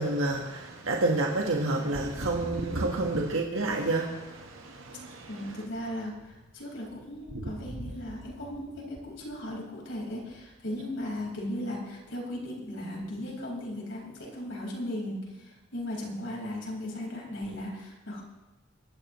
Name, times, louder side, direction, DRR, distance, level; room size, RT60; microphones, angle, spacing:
voice 1, 0.0-5.5, right 2 dB, 85° right, 0 dB, 1.4 m, -29 dB
voice 2, 5.3-18.2, left 1 dB, 70° left, -3 dB, 4.9 m, -37 dB
23.5 x 11.5 x 3.1 m, 1.1 s
head